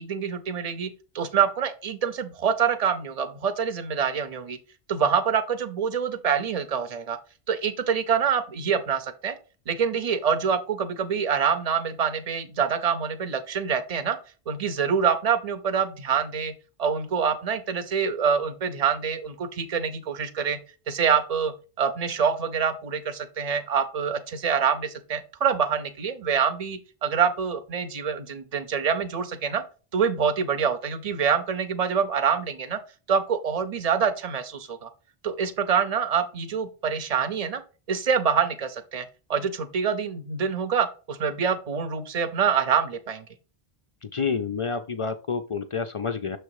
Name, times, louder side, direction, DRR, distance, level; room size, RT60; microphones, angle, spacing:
voice 1, 0.0-4.6 4.9-7.2 7.5-9.3 9.7-14.2 14.5-20.6 20.9-29.6 29.9-32.8 33.1-34.9 35.2-37.6 37.9-43.2, right 7 dB, 40° right, 11 dB, 0.7 m, -26 dB
voice 2, 44.0-46.4, left 5 dB, 55° left, 8 dB, 0.3 m, -29 dB
6.8 x 3.3 x 4.7 m, 0.35 s
omnidirectional pair, 1.1 m